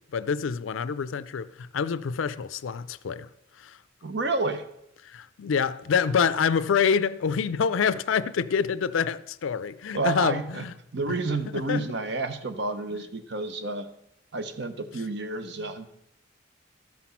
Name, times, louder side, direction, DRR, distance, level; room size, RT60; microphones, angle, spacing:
voice 1, 0.0-3.3 3.6-3.8 5.0-10.7 11.5-11.8 12.9-13.0 15.6-15.7, left 6 dB, 80° left, 0.4 m, -26 dB
voice 2, 4.0-4.6 9.9-10.6 10.9-13.9 14.3-15.9, right 3 dB, 60° right, 0.9 m, -30 dB
13.0 x 6.0 x 5.7 m
head